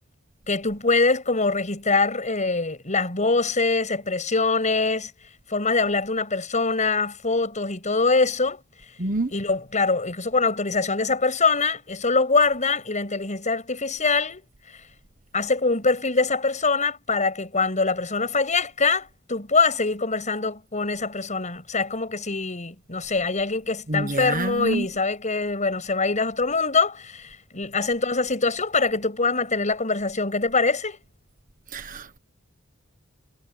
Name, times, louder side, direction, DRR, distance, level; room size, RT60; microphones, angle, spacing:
voice 1, 0.5-5.1 5.5-8.6 9.3-14.4 15.3-31.0, left 3 dB, 35° left, 7.7 m, -23 dB
voice 2, 9.0-9.3 23.9-24.9 31.7-32.2, right 2 dB, 40° right, 1.3 m, -27 dB
head